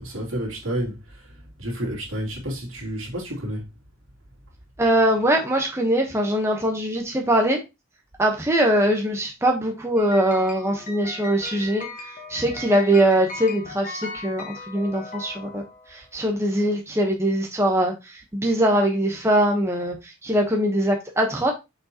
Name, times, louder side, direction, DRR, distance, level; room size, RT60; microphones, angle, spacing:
voice 1, 0.0-3.7, equal, 80° right, 2.8 m, -30 dB
voice 2, 4.8-7.6 8.2-15.6 15.9-21.5, right 1 dB, 15° right, 1.1 m, -22 dB
sound 1, 10.0-16.0, left 3 dB, 40° left, 1.5 m, -38 dB
6.4 x 5.3 x 2.9 m
head